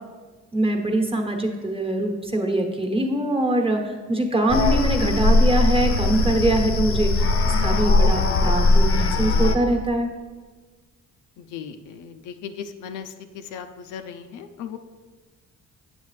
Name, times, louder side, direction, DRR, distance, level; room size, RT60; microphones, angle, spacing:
voice 1, 0.5-10.1, right 1 dB, 20° right, 2 dB, 1.1 m, -23 dB
sound 1, 4.5-9.6, left 2 dB, 45° left, 0.7 m, -19 dB
voice 2, 11.4-14.8, left 7 dB, 85° left, 7 dB, 0.6 m, -37 dB
7.4 x 7.1 x 3.2 m, 1.4 s
cardioid pair, 90°, 30 cm